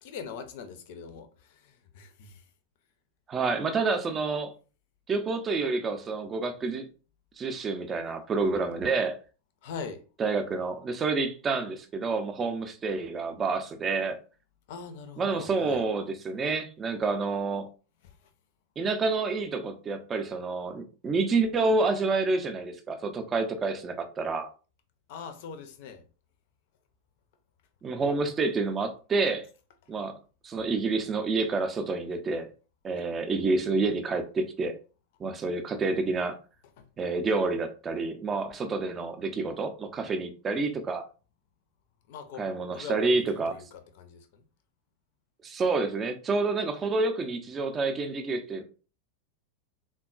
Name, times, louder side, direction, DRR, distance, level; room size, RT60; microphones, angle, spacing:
voice 1, 0.0-2.4 9.6-10.0 14.7-15.8 18.0-18.3 25.1-26.0 36.8-36.9 42.1-44.4, left 6 dB, 50° left, 0.5 m, -42 dB
voice 2, 3.3-4.5 5.1-6.9 7.4-9.2 10.2-14.2 15.2-17.7 18.8-24.5 27.8-29.5 29.9-30.2 30.4-32.5 32.8-34.7 35.2-36.4 37.0-41.0 42.4-43.6 45.4-48.6, right 3 dB, 20° right, 0.5 m, -28 dB
3.5 x 2.2 x 2.4 m
figure-of-eight pair, 90°, 0 cm